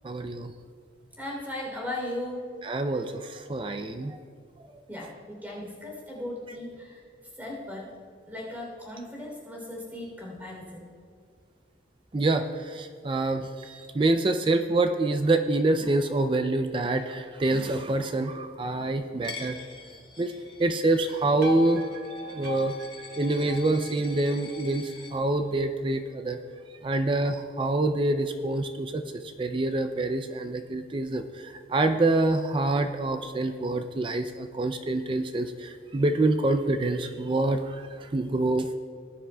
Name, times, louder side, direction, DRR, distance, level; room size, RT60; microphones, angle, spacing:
voice 1, 0.0-0.5 2.6-4.2 12.1-19.6 20.2-20.3 20.6-21.8 22.3-22.7 23.2-26.4 26.8-29.0 29.4-38.8, right 2 dB, 30° right, 7 dB, 0.4 m, -26 dB
voice 2, 1.2-2.4 4.9-7.0 7.4-7.9 8.3-10.9, left 1 dB, 10° right, -3 dB, 3.3 m, -37 dB
Coin (dropping), 19.2-25.1, left 4 dB, 25° left, 1.2 m, -45 dB
sound 1, 21.3-25.7, left 2 dB, 60° right, 1.3 m, -40 dB
19.5 x 10.0 x 2.3 m, 2.1 s
head